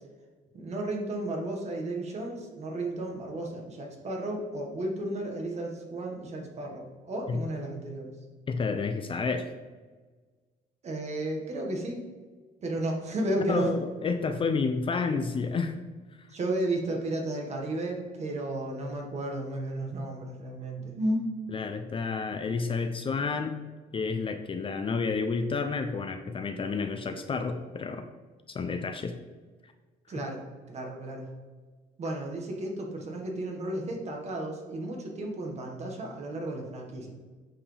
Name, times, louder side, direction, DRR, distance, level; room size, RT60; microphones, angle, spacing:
voice 1, 0.5-8.1 10.8-12.0 12.6-13.7 16.3-21.3 30.1-30.4 30.7-31.3 32.0-37.1, right 1 dB, 40° right, 1 dB, 1.7 m, -33 dB
voice 2, 8.5-9.5 13.5-15.8 16.2-16.3 21.5-23.6 23.9-28.1 28.5-29.1 29.6-29.7, left 4 dB, 30° left, 7 dB, 0.6 m, -30 dB
8.5 x 4.9 x 3.4 m, 1.4 s
cardioid pair, 110°, 17 cm